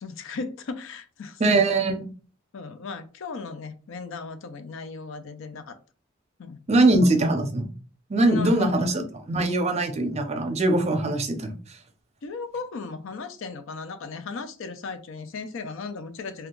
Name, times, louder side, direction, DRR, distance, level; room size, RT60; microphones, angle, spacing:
voice 1, 0.0-1.8 2.5-5.8 6.4-6.6 8.2-8.7 12.2-16.5, left 4 dB, 70° left, 0.4 m, -36 dB
voice 2, 1.4-2.0 6.7-7.7 8.1-11.6, right 2 dB, 35° right, 0.6 m, -22 dB
2.7 x 2.3 x 3.7 m
head